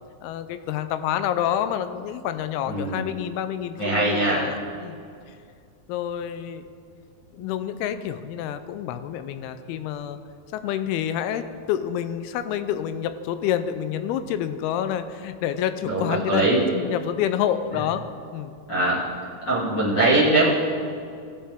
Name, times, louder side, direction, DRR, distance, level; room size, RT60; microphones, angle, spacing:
voice 1, 0.2-5.0 5.9-6.7 7.3-10.2 10.5-18.0 18.3-18.5, left 10 dB, 85° left, 11 dB, 2.4 m, -28 dB
voice 2, 2.7-3.0 3.8-4.4 7.4-7.5 15.8-16.6 18.7-19.0 19.5-20.5, right 2 dB, 35° left, -8 dB, 2.4 m, -22 dB
17.5 x 7.3 x 3.5 m, 2.3 s
omnidirectional pair, 4.6 m